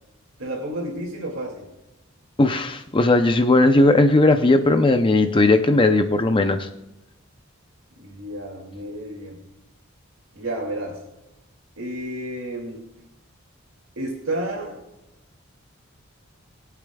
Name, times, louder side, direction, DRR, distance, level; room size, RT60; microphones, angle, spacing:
voice 1, 0.4-1.7 8.0-9.4 10.3-11.0 11.8-12.8 14.0-14.8, right 1 dB, 70° right, 0 dB, 2.4 m, -31 dB
voice 2, 2.4-6.7, left 2 dB, 25° left, 8 dB, 0.6 m, -17 dB
21.5 x 8.4 x 2.3 m, 0.96 s
head